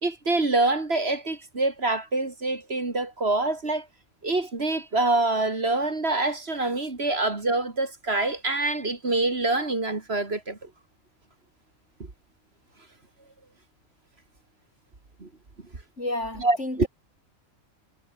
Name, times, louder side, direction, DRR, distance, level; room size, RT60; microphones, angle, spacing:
voice 1, 0.0-3.9 4.2-10.7 15.2-15.3 16.4-16.9, right 2 dB, 45° right, 3.0 m, -25 dB
voice 2, 16.0-16.9, left 1 dB, 55° left, 6.9 m, -31 dB
omnidirectional pair, 1.4 m